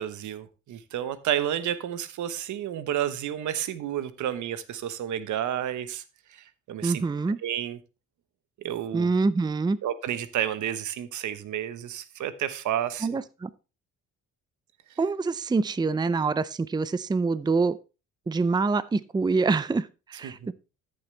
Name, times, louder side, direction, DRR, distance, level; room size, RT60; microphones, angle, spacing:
voice 1, 0.0-6.0 6.3-7.0 7.4-7.8 8.6-9.1 9.8-13.2 20.2-20.3, right 10 dB, 75° right, 1.1 m, -31 dB
voice 2, 6.8-7.4 8.9-9.8 13.0-13.5 15.0-17.8 18.3-20.5, right 4 dB, 15° right, 0.5 m, -25 dB
13.5 x 7.0 x 3.3 m
cardioid pair, 90°, 30 cm